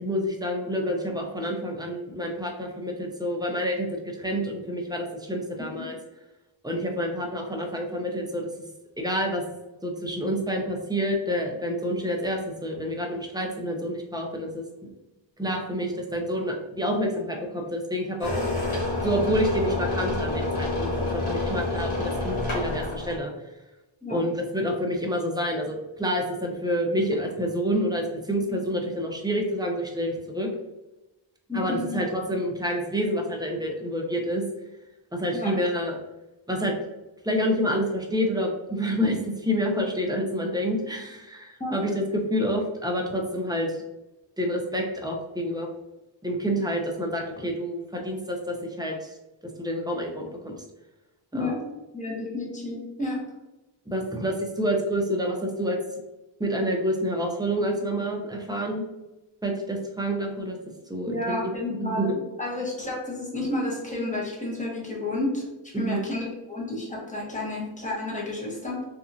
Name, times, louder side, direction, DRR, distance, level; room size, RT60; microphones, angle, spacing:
voice 1, 0.0-6.0 6.6-8.5 9.0-9.4 9.8-14.9 15.4-18.3 19.0-23.3 24.1-30.5 31.5-34.4 35.1-35.9 36.5-36.7 37.2-43.7 44.4-45.7 46.2-49.1 49.6-50.6 51.3-51.5 53.9-55.8 56.4-58.8 59.4-60.6 60.9-61.5 61.8-62.1 65.7-66.0, equal, 10° right, 1 dB, 0.4 m, -28 dB
sound 1, 18.2-23.2, left 2 dB, 85° left, 1.1 m, -28 dB
voice 2, 31.5-31.9 35.3-35.5 41.6-41.8 51.3-51.6 51.9-53.2 61.1-62.1 62.4-68.8, left 2 dB, 15° left, -3 dB, 0.9 m, -31 dB
2.9 x 2.5 x 2.5 m, 1.0 s
wide cardioid pair, 90°, 47 cm